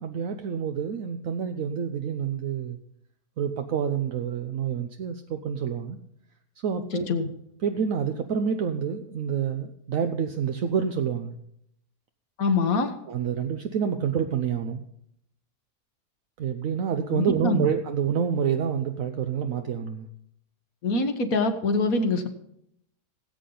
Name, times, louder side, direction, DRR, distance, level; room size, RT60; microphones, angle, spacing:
voice 1, 0.0-2.8 3.4-6.0 6.6-7.1 7.6-11.4 13.1-14.8 16.4-20.1, right 7 dB, 65° right, 6 dB, 1.1 m, -28 dB
voice 2, 12.4-12.9 17.1-17.7 20.8-22.3, left 3 dB, 70° left, 7 dB, 1.7 m, -24 dB
18.0 x 8.5 x 3.9 m, 0.74 s
omnidirectional pair, 1.5 m